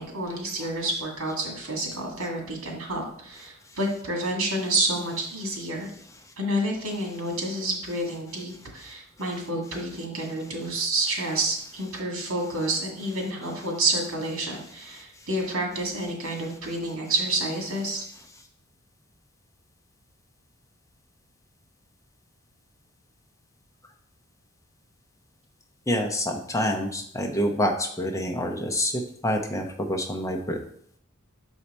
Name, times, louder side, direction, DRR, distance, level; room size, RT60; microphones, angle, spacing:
voice 1, 0.0-5.9 6.4-18.0, right 1 dB, 80° right, 1 dB, 1.9 m, -29 dB
voice 2, 25.9-28.9 29.2-30.6, equal, 15° left, 2 dB, 0.7 m, -27 dB
6.4 x 4.5 x 4.2 m, 0.64 s
head